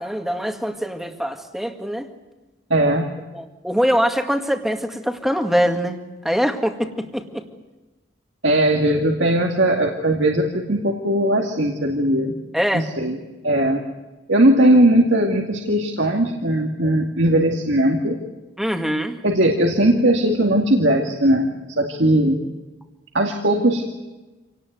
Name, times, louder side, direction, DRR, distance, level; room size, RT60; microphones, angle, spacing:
voice 1, 0.0-2.1 3.3-6.0 6.2-7.4 12.5-12.9 18.6-19.2, equal, ahead, 5 dB, 1.9 m, -23 dB
voice 2, 2.7-3.1 8.4-12.3 12.7-13.1 13.4-13.8 14.3-18.1 19.2-21.5 21.8-22.4 23.1-23.8, right 1 dB, 80° right, 1 dB, 2.3 m, -18 dB
27.0 x 18.5 x 9.5 m, 1.1 s
head